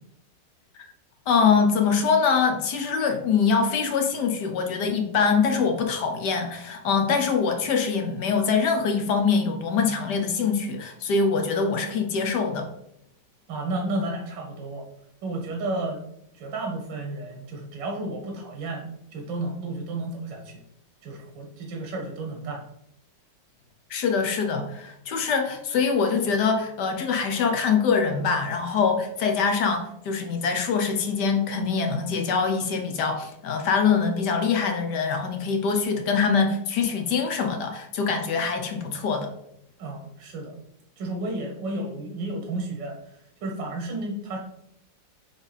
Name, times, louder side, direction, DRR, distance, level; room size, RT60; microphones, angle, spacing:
voice 1, 1.3-12.7 23.9-39.3, left 5 dB, 70° left, 4 dB, 1.4 m, -24 dB
voice 2, 13.5-14.8 15.2-16.0 16.4-20.6 21.0-22.6 39.8-40.5 41.0-43.0 43.4-44.4, right 2 dB, 85° right, 1 dB, 1.7 m, -32 dB
7.0 x 3.5 x 4.0 m, 0.75 s
omnidirectional pair, 2.0 m